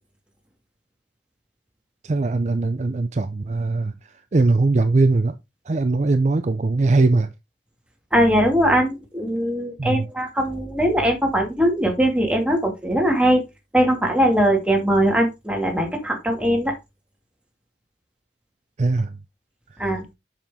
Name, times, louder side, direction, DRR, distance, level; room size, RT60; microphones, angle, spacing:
voice 1, 2.0-3.9 4.3-5.3 5.7-7.3 9.8-10.1 18.8-19.1, right 3 dB, 40° right, 0.5 m, -20 dB
voice 2, 8.1-13.4 13.7-16.7 19.8-20.1, equal, 5° right, 2.2 m, -20 dB
7.2 x 5.8 x 3.6 m
head